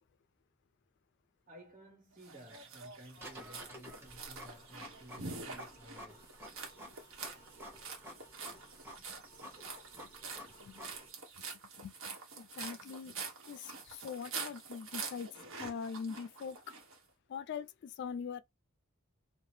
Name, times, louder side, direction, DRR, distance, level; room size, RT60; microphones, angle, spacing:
voice 1, 1.5-6.3 11.4-11.5, equal, 45° right, 1.6 m, -55 dB
sound 1, 2.2-17.0, right 4 dB, 75° right, 1.0 m, -46 dB
Printer, 3.2-11.1, equal, 10° right, 1.0 m, -52 dB
voice 2, 10.6-10.9 11.8-13.2 13.5-15.3 15.6-16.6 17.3-18.4, left 6 dB, 60° left, 0.3 m, -42 dB
2.8 x 2.1 x 3.2 m
head